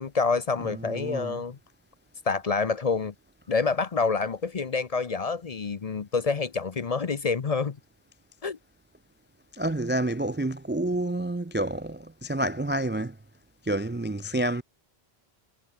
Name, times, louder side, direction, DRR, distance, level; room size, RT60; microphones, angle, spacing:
voice 1, 0.0-1.6 2.3-3.1 3.5-7.8 8.4-8.6, left 4 dB, 40° left, 0.7 m, -27 dB
voice 2, 0.6-1.4 9.5-13.2 13.6-14.6, right 1 dB, 15° right, 0.3 m, -29 dB
omnidirectional pair, 1.1 m